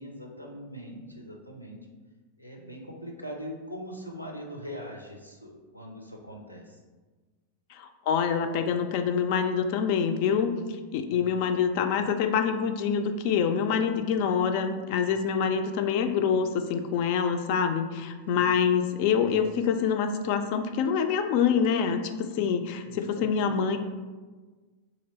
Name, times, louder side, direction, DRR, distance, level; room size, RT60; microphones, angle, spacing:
voice 1, 0.0-1.8 2.4-6.8 18.3-18.5 22.8-23.8, equal, 90° left, 1 dB, 0.6 m, -41 dB
voice 2, 7.7-10.5 10.9-23.8, left 7 dB, 45° left, 8 dB, 0.3 m, -26 dB
3.2 x 2.9 x 4.1 m, 1.3 s
figure-of-eight pair, 90°, 0 cm